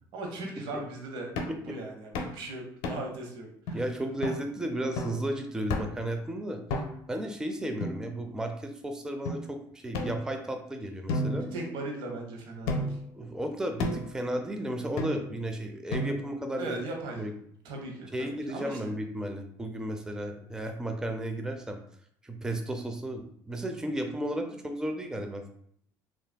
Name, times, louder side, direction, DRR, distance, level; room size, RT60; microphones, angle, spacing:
voice 1, 0.1-1.3 1.6-3.8 11.5-13.0 16.6-17.2 17.6-18.9, right 2 dB, 75° right, 2 dB, 0.8 m, -38 dB
sound 1, 1.4-1.6 2.1-2.4 2.8-3.2 3.7-3.8 4.2-4.4 5.0-5.2 5.7-6.1 6.7-7.1 7.8-8.5 9.3-9.4 9.9-10.6 11.1-12.1 12.7-13.1 13.8-14.2 15.0-15.4 15.9-16.4, left 1 dB, 80° left, 0.5 m, -33 dB
voice 2, 3.7-6.6 7.1-11.5 13.2-16.8 17.2-17.3 18.1-21.8 22.2-25.5, right 1 dB, 10° right, 5 dB, 0.4 m, -34 dB
3.3 x 2.4 x 2.2 m, 0.68 s
supercardioid pair, 85°, 9 cm